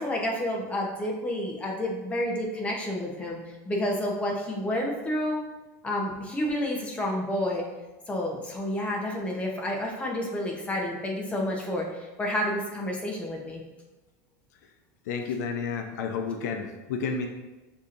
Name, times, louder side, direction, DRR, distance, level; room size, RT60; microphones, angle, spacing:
voice 1, 0.0-3.4 3.7-5.4 5.8-7.6 8.1-11.9 12.2-13.6, left 1 dB, 15° left, -1 dB, 0.7 m, -29 dB
voice 2, 15.1-17.3, left 5 dB, 90° left, 5 dB, 0.5 m, -31 dB
6.6 x 2.8 x 2.5 m, 1.1 s
supercardioid pair, 150°, 9 cm